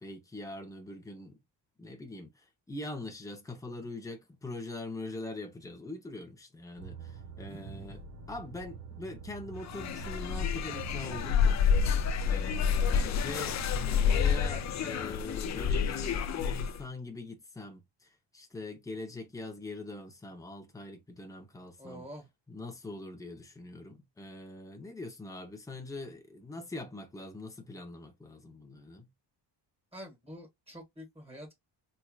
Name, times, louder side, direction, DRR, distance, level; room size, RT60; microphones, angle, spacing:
voice 1, 0.0-1.4 1.8-11.8 12.3-22.0 22.5-29.1, left 2 dB, 5° left, 0.8 m, -43 dB
sound 1, 6.8-15.1, right 5 dB, 35° right, 0.9 m, -46 dB
voice 2, 7.5-8.0 21.8-22.3 29.9-31.6, equal, 15° right, 1.7 m, -47 dB
sound 2, 9.6-16.8, left 7 dB, 40° left, 0.4 m, -29 dB
4.5 x 2.7 x 2.3 m
cardioid pair, 165°, 45 cm